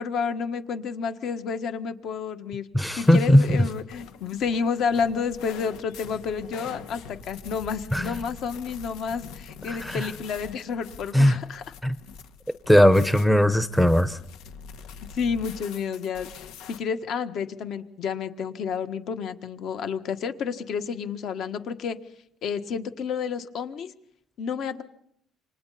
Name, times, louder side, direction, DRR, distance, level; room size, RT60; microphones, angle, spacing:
voice 1, 0.0-2.7 3.0-11.6 15.1-16.3 16.7-22.0 22.4-23.9 24.4-24.8, left 6 dB, 55° left, 9 dB, 1.6 m, -30 dB
voice 2, 2.7-3.4 7.9-8.1 9.8-10.1 11.1-11.4 11.8-11.9 12.7-14.2, equal, 5° left, 11 dB, 0.7 m, -18 dB
sound 1, 3.0-16.8, left 6 dB, 90° left, 1.9 m, -44 dB
28.5 x 25.5 x 4.2 m, 0.71 s
cardioid pair, 155°, 0 cm